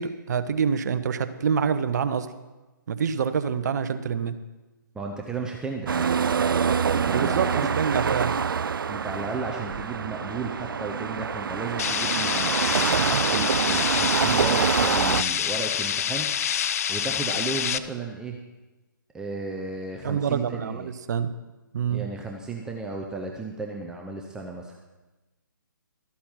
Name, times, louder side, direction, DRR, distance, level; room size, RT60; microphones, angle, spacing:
voice 1, 0.0-2.3 2.9-4.3 7.1-8.3 20.0-21.3 21.7-22.1, right 7 dB, 55° right, 12 dB, 0.7 m, -26 dB
voice 2, 4.9-6.1 6.9-7.7 8.9-16.3 16.9-18.4 19.1-20.9 21.9-24.8, right 3 dB, 5° right, 0 dB, 0.7 m, -34 dB
sound 1, 5.9-15.2, right 6 dB, 75° right, 0.4 m, -25 dB
sound 2, 11.8-17.8, left 9 dB, 45° left, 0.5 m, -27 dB
13.0 x 8.5 x 5.7 m, 1.1 s
figure-of-eight pair, 140°, 11 cm